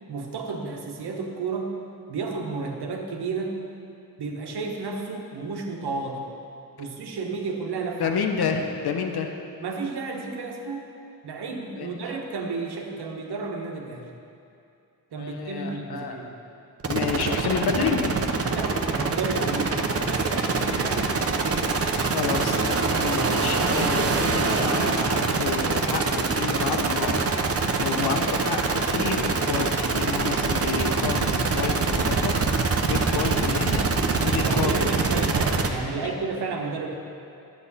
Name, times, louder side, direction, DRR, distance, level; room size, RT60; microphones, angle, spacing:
voice 1, 0.1-1.7 2.1-3.6 4.2-6.3 6.8-8.1 9.6-10.9 11.2-14.1 15.1-16.3 18.5-21.8 34.4-36.9, right 4 dB, 80° right, 2 dB, 1.2 m, -32 dB
voice 2, 8.0-9.3 11.7-12.2 15.2-16.3 16.9-18.2 22.0-27.2 27.8-33.9 34.2-34.9 36.0-36.2, left 6 dB, 75° left, 4 dB, 0.9 m, -30 dB
sound 1, 16.8-35.7, right 4 dB, 35° right, 0.8 m, -24 dB
11.0 x 8.4 x 4.1 m, 2.6 s
cardioid pair, 85°, 38 cm